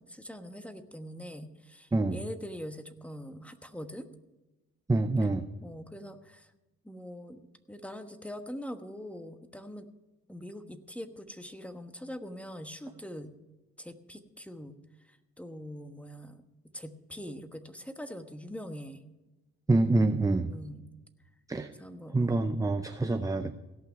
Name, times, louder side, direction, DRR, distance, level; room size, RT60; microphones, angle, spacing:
voice 1, 0.0-4.1 5.6-6.5 6.8-7.4 7.7-9.9 10.3-13.3 13.8-14.7 15.1-16.4 16.7-19.0 19.8-20.0 20.5-20.9 21.8-22.5, equal, 5° left, 8 dB, 1.2 m, -43 dB
voice 2, 4.9-5.4 19.7-20.5 21.5-21.7 22.1-23.6, right 2 dB, 10° right, 8 dB, 0.6 m, -26 dB
17.0 x 5.8 x 9.2 m, 1.1 s
cardioid pair, 90°, 30 cm